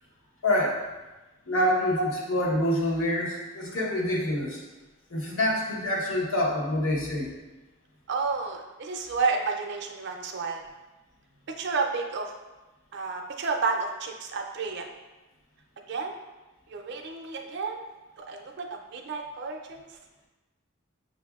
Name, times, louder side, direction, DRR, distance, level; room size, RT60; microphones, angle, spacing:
voice 1, 0.4-0.8 1.5-4.6 5.1-7.3, left 1 dB, 75° left, -3 dB, 0.9 m, -26 dB
voice 2, 8.1-10.6 11.5-12.3 12.9-14.9 15.9-16.1 16.7-17.9 18.2-20.0, right 4 dB, 50° right, 3 dB, 0.4 m, -31 dB
6.9 x 2.5 x 2.3 m, 1.1 s
head